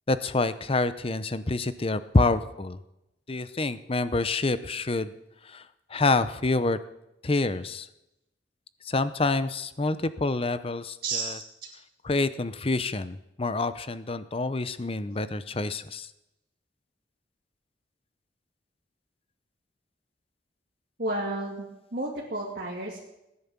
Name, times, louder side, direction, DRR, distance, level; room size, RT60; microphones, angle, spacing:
voice 1, 0.1-2.8 3.3-5.1 5.4-5.6 5.9-6.8 7.2-7.9 8.8-11.4 12.0-16.1, left 3 dB, 30° left, 13 dB, 0.7 m, -27 dB
voice 2, 11.0-11.4 21.0-21.7 21.9-23.0, right 2 dB, 55° right, -3 dB, 2.6 m, -31 dB
18.0 x 10.5 x 7.3 m, 0.90 s
head